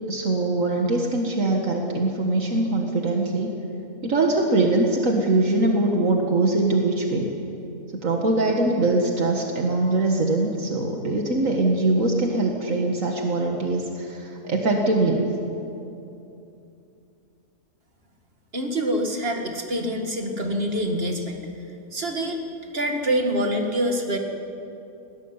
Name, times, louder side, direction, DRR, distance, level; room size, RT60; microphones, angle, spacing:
voice 1, 0.1-3.5 4.0-7.3 7.9-15.3, right 2 dB, 70° right, 1 dB, 2.1 m, -22 dB
voice 2, 18.5-21.4 21.9-22.4 22.7-24.2, equal, 45° right, 3 dB, 2.4 m, -25 dB
21.0 x 18.0 x 9.7 m, 2.8 s
omnidirectional pair, 1.4 m